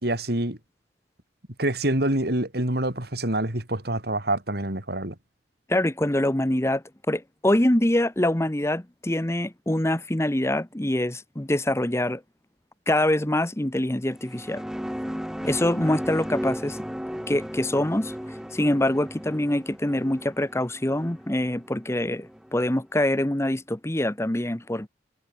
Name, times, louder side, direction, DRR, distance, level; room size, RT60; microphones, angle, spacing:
voice 1, 0.0-0.6 1.6-5.1, right 1 dB, 60° right, 4.6 m, -26 dB
voice 2, 5.7-12.2 12.9-14.6 15.4-16.8 17.3-18.1 18.5-24.9, left 1 dB, 15° left, 1.1 m, -24 dB
sound 1, 14.1-22.8, equal, 5° right, 2.9 m, -35 dB
head